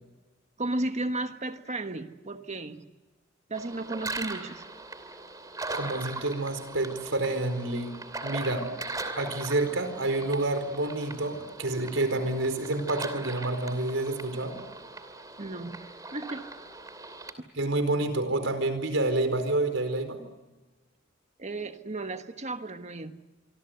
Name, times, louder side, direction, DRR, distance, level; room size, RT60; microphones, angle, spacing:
voice 1, 0.6-2.8 3.5-4.7 15.4-15.8 16.1-16.4 21.4-23.2, right 2 dB, 35° right, 8 dB, 1.3 m, -34 dB
sound 1, 3.5-17.3, right 2 dB, 20° right, 2.8 m, -40 dB
voice 2, 5.7-7.9 8.2-8.7 9.1-14.5 17.5-20.2, right 2 dB, 85° right, 8 dB, 4.6 m, -28 dB
26.5 x 25.0 x 8.0 m, 1.2 s
head